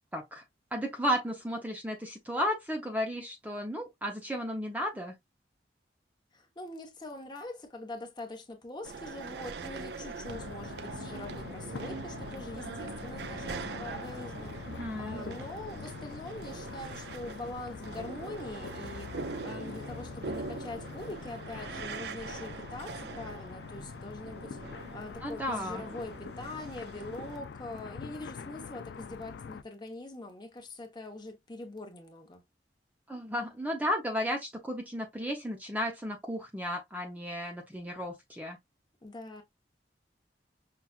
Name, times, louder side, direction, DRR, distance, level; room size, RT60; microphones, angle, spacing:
voice 1, 0.1-0.4 0.7-5.1 14.7-15.2 25.2-25.8 33.1-38.6, equal, 10° right, 0.6 m, -34 dB
voice 2, 6.3-14.6 15.0-24.6 24.9-32.4 39.0-39.4, left 2 dB, 25° left, 0.9 m, -43 dB
sound 1, 8.8-27.4, right 4 dB, 65° right, 0.4 m, -43 dB
sound 2, 10.2-29.6, left 5 dB, 70° left, 0.4 m, -44 dB
5.6 x 2.4 x 2.4 m
head